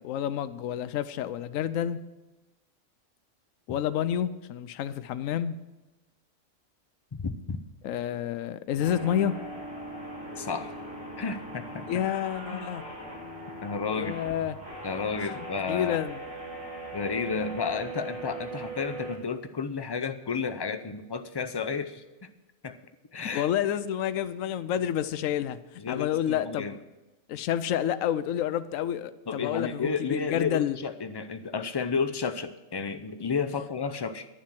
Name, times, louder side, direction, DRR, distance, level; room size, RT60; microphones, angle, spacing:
voice 1, 0.0-2.0 3.7-5.6 7.8-9.4 11.9-12.8 13.9-14.6 15.2-15.3 15.7-16.2 23.3-26.8 27.3-30.8, left 10 dB, 80° left, 14 dB, 1.0 m, -29 dB
voice 2, 7.2-7.6 10.4-10.7 11.2-12.0 12.4-12.7 13.6-14.2 14.8-16.0 16.9-22.3 22.6-22.8 23.1-23.5 25.8-26.7 29.3-34.3, left 5 dB, 35° left, 9 dB, 0.4 m, -32 dB
sound 1, 8.8-19.1, right 1 dB, 85° right, 2.9 m, -40 dB
11.0 x 7.4 x 7.6 m, 1.1 s
omnidirectional pair, 1.4 m